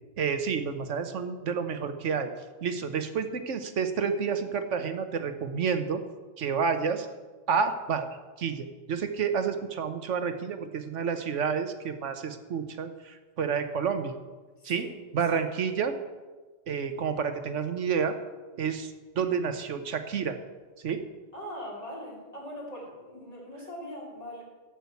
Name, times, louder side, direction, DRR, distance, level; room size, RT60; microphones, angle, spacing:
voice 1, 0.2-2.3 2.6-6.0 6.4-7.1 7.5-8.1 8.4-14.1 14.6-14.9 15.1-15.9 16.7-18.1 18.6-20.4 20.8-21.0, right 6 dB, 65° right, 8 dB, 1.3 m, -29 dB
voice 2, 14.6-14.9 15.3-15.4 15.6-15.7 21.3-24.4, equal, 30° left, -4 dB, 3.1 m, -41 dB
12.5 x 6.3 x 8.3 m, 1.3 s
omnidirectional pair, 1.4 m